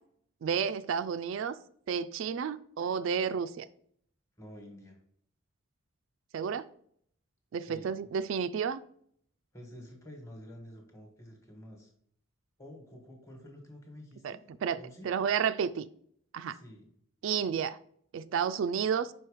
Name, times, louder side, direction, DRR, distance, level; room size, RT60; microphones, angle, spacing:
voice 1, 0.4-1.6 1.9-3.7 6.3-6.7 7.5-8.8 14.2-15.9 16.3-16.6 17.2-17.8 18.1-19.1, right 7 dB, 65° right, 12 dB, 0.3 m, -31 dB
voice 2, 4.4-5.0 7.6-7.9 9.5-11.9 12.6-14.4 14.8-15.1 16.5-16.9, equal, 15° left, 2 dB, 1.2 m, -49 dB
5.6 x 4.5 x 4.8 m, 0.65 s
head